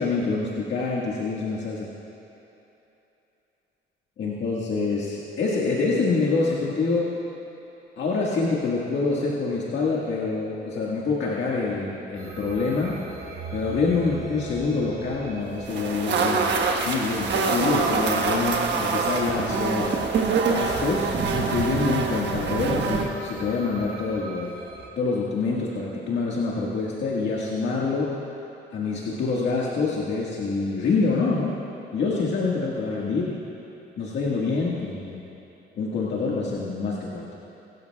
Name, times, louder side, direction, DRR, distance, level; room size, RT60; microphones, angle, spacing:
voice 1, 0.0-1.9 4.2-7.1 8.0-13.0 13.5-19.9 20.5-24.5 25.0-28.2 28.7-31.5 31.9-33.4 34.0-35.3 35.8-37.3, left 4 dB, 65° left, -5 dB, 1.7 m, -26 dB
sound 1, 12.1-24.9, right 4 dB, 85° right, 2.6 m, -39 dB
sound 2, 15.7-23.1, right 4 dB, 65° right, 1.4 m, -25 dB
22.0 x 12.5 x 2.3 m, 3.0 s
cardioid pair, 90°, 20 cm